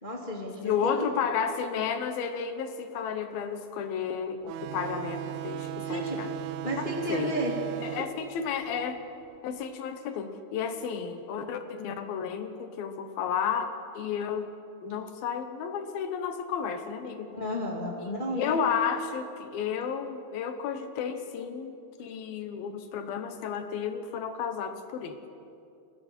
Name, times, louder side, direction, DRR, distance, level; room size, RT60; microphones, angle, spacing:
voice 1, 0.0-0.7 5.8-6.2 6.6-7.5 7.9-8.0 17.3-18.6, equal, 20° left, -2 dB, 1.3 m, -32 dB
voice 2, 0.6-6.3 7.1-7.3 7.8-9.0 9.4-14.5 14.8-17.3 18.0-25.2, left 7 dB, 70° left, 8 dB, 2.8 m, -32 dB
sound 1, 4.5-9.6, right 11 dB, 80° right, 2.5 m, -37 dB
29.5 x 20.5 x 4.5 m, 2.6 s
omnidirectional pair, 4.8 m